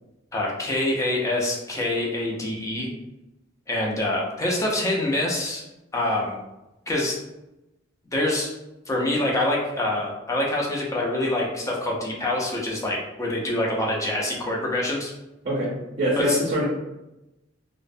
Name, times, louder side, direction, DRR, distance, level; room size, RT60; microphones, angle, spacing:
voice 1, 0.3-2.9 3.7-5.6 5.9-6.4 6.9-7.1 8.1-8.5 8.9-15.1 16.2-16.4, left 1 dB, 15° left, -2 dB, 0.4 m, -25 dB
voice 2, 15.4-16.6, equal, 40° right, -5 dB, 0.5 m, -24 dB
2.4 x 2.1 x 2.5 m, 0.96 s
head